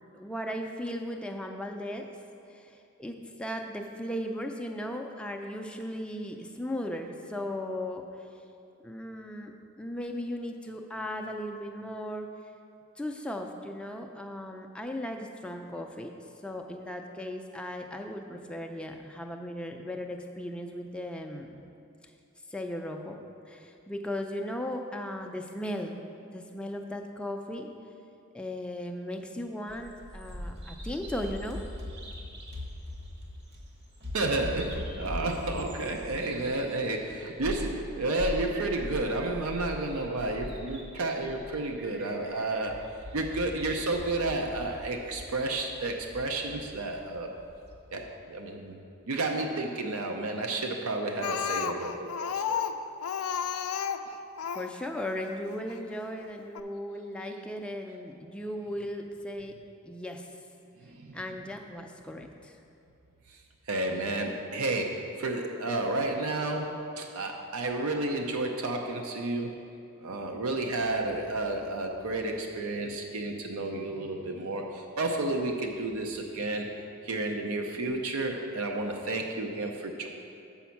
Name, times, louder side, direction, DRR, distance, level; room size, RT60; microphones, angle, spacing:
voice 1, 0.1-2.1 2.5-8.3 8.8-12.3 13.0-16.1 16.4-21.6 22.5-23.2 23.5-27.7 28.3-31.6 54.5-59.6 59.8-60.3 61.1-62.6, left 1 dB, 5° left, 2 dB, 0.4 m, -37 dB
Bird vocalization bird call bird song, 29.7-47.8, left 1 dB, 50° right, 1.0 m, -41 dB
voice 2, 34.1-42.8 43.1-47.3 47.9-52.6 60.8-61.2 63.3-63.4 63.7-69.6 70.0-76.7 77.0-80.1, right 2 dB, 75° right, 3 dB, 0.6 m, -31 dB
Speech, 51.2-54.7 55.7-55.8 56.2-56.3 56.5-56.6, left 8 dB, 70° left, 0.4 m, -32 dB
7.1 x 5.1 x 5.8 m, 2.6 s
head